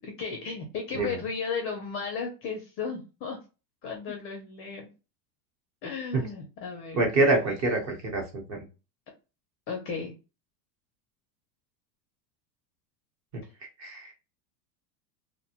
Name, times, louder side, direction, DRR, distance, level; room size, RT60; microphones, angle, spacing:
voice 1, 0.0-3.4 3.8-4.9 5.8-7.1 9.7-10.1, left 5 dB, 30° left, 2 dB, 0.4 m, -34 dB
voice 2, 7.0-8.6 13.8-14.1, right 2 dB, 35° right, 1 dB, 1.0 m, -26 dB
2.5 x 2.2 x 2.8 m, 0.30 s
supercardioid pair, 135°, 50 cm